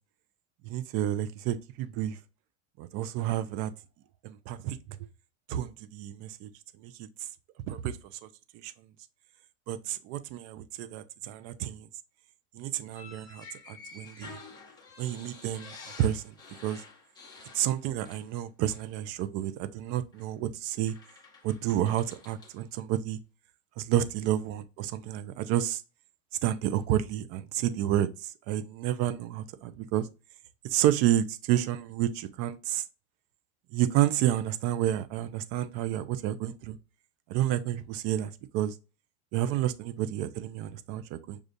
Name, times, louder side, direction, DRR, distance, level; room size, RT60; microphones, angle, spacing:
voice 1, 0.6-2.2 2.8-3.7 4.2-4.8 5.5-6.5 6.8-7.1 7.7-7.9 8.5-8.7 9.7-11.9 12.5-14.4 15.0-16.3 16.6-16.8 17.5-20.9 21.4-23.2 23.8-25.8 26.4-30.1 30.6-32.8 33.7-36.8 37.3-38.8 39.3-41.4, right 12 dB, 40° right, 0.4 m, -30 dB
sound 1, 12.9-18.4 18.7-18.9 20.1-20.3 20.9-22.6, left 4 dB, 10° left, 0.8 m, -50 dB
6.5 x 2.4 x 2.5 m
supercardioid pair, 150°, 37 cm